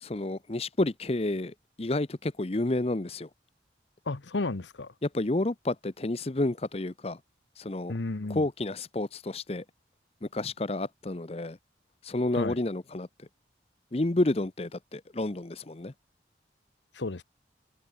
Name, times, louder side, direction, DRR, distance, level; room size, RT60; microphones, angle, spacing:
voice 1, 0.0-3.3 5.0-7.2 7.6-7.9 8.3-9.6 10.3-11.6 12.0-13.1 13.9-15.9, left 2 dB, 35° left, 0.8 m, -30 dB
voice 2, 4.1-4.9 7.9-8.4 12.3-12.6 16.9-17.2, left 3 dB, 80° left, 1.0 m, -32 dB
head